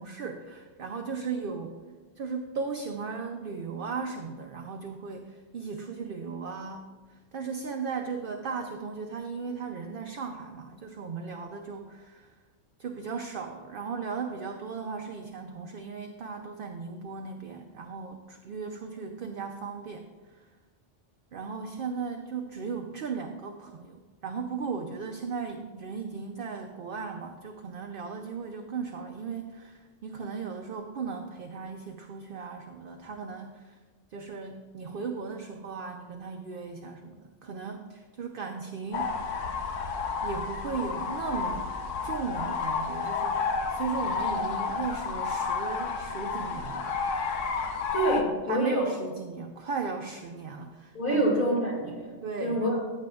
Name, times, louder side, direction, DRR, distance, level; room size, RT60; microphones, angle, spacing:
voice 1, 0.0-1.8 2.2-12.3 12.8-20.1 20.3-20.4 21.3-33.8 34.1-39.1 40.2-41.7 42.0-43.4 43.7-47.0 48.2-51.2 52.2-52.8, right 5 dB, 55° right, 4 dB, 0.7 m, -36 dB
sound 1, 38.9-48.2, left 5 dB, 85° left, 1.1 m, -31 dB
voice 2, 47.9-48.9 50.9-52.8, right 1 dB, 45° left, -2 dB, 2.5 m, -27 dB
14.5 x 7.6 x 2.4 m, 1.3 s
omnidirectional pair, 1.2 m